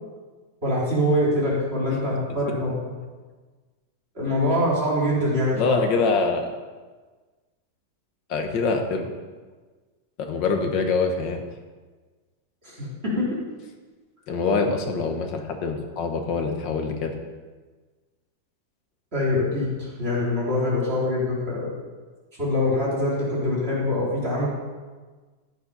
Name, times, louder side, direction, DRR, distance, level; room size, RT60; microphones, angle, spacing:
voice 1, 0.6-2.9 4.1-5.8 12.8-13.2 19.1-21.7 22.4-24.5, left 1 dB, 30° right, -7 dB, 3.4 m, -24 dB
voice 2, 5.5-6.5 8.3-9.1 10.3-11.4 14.3-17.2, left 4 dB, 80° left, 4 dB, 1.9 m, -24 dB
14.0 x 6.6 x 5.4 m, 1.4 s
omnidirectional pair, 2.0 m